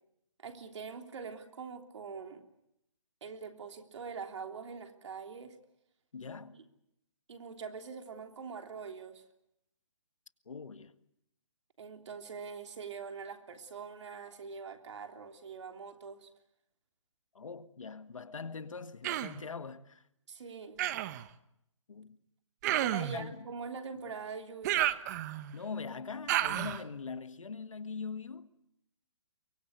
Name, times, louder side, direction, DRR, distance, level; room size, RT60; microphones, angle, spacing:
voice 1, 0.4-2.4 3.2-5.6 6.5-6.6 7.3-9.2 11.8-16.3 20.3-20.9 22.6-24.9, right 5 dB, 65° right, 3.3 m, -44 dB
voice 2, 6.1-6.6 10.5-11.0 17.3-20.0 21.9-22.2 23.0-23.5 24.0-24.2 25.5-28.6, left 5 dB, 85° left, 1.7 m, -42 dB
Human voice, 19.0-19.4 20.8-21.2 22.6-23.2 24.6-25.5 26.3-26.8, right 13 dB, 35° right, 1.1 m, -31 dB
23.5 x 22.5 x 8.1 m
hypercardioid pair, 145°, 16 cm